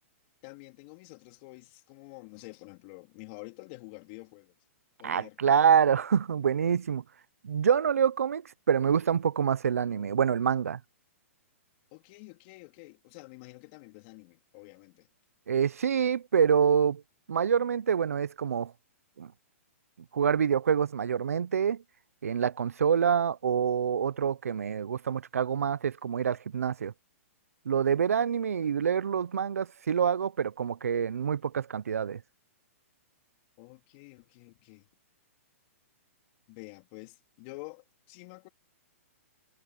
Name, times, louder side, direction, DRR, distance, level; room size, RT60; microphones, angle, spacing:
voice 1, 0.4-4.5 5.0-5.6 11.9-15.1 33.6-34.9 36.5-38.5, left 27 dB, 40° left, 3.6 m, -48 dB
voice 2, 5.0-7.0 7.4-10.8 15.5-17.0 17.3-18.7 19.2-19.3 20.1-21.8 22.2-26.9 27.7-32.2, right 7 dB, 85° right, 0.9 m, -26 dB
hypercardioid pair, 135°, 8 cm